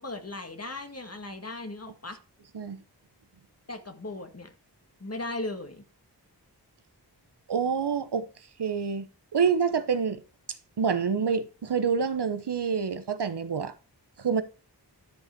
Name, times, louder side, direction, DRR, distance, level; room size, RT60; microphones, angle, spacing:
voice 1, 0.0-2.2 3.7-4.5 5.0-5.8, left 2 dB, 35° left, 1.8 m, -37 dB
voice 2, 7.5-8.3 8.6-9.1 9.3-10.2 10.8-13.7 14.2-14.4, right 6 dB, 75° right, 0.9 m, -27 dB
12.0 x 5.6 x 4.5 m
wide cardioid pair, 65°, 41 cm